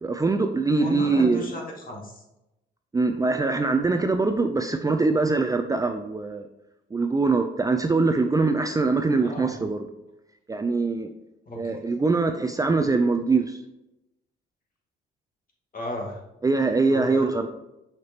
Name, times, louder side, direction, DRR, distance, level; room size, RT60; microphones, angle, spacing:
voice 1, 0.0-1.5 2.9-6.5 6.9-9.8 10.5-11.1 11.6-13.6 16.4-17.5, right 3 dB, 15° right, 6 dB, 0.5 m, -23 dB
voice 2, 0.8-2.2 9.2-9.5 11.5-11.8 15.7-16.2 16.9-17.3, left 1 dB, 45° left, -1 dB, 2.2 m, -34 dB
6.2 x 5.9 x 3.0 m, 0.90 s
cardioid pair, 90°, 20 cm